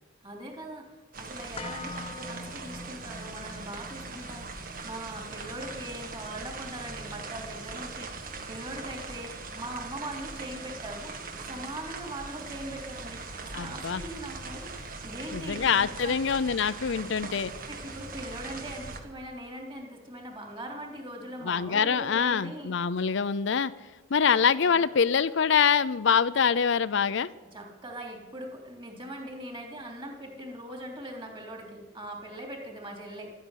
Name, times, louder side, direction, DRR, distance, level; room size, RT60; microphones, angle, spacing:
voice 1, 0.2-0.9 1.2-11.1 11.5-16.2 17.7-22.8 24.7-24.8 27.5-33.3, right 1 dB, 25° right, 2 dB, 3.6 m, -41 dB
sound 1, 1.1-19.0, right 3 dB, 45° right, 1.7 m, -41 dB
sound 2, 1.6-9.6 9.9-10.0, left 2 dB, 30° left, 0.9 m, -46 dB
voice 2, 13.5-14.0 15.3-17.5 21.4-23.7 24.1-27.3, left 6 dB, 65° left, 15 dB, 0.5 m, -25 dB
sound 3, 22.9-24.8, right 2 dB, 75° right, 3.6 m, -56 dB
13.0 x 10.0 x 10.0 m, 1.2 s
head